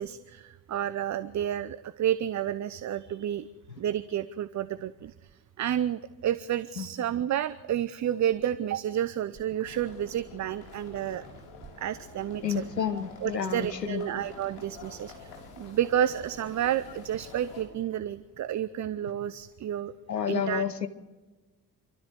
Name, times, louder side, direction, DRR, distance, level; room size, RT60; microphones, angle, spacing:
voice 1, 0.0-3.5 3.8-5.3 5.6-11.2 11.8-12.6 13.2-19.9 20.3-20.6, right 10 dB, 35° right, 14 dB, 0.8 m, -30 dB
sound 1, 9.6-17.6, left 3 dB, 60° left, 6.6 m, -48 dB
voice 2, 12.4-14.0 20.1-20.9, left 7 dB, 90° left, 11 dB, 0.9 m, -30 dB
27.5 x 13.0 x 7.8 m, 1.2 s
figure-of-eight pair, 45°, 48 cm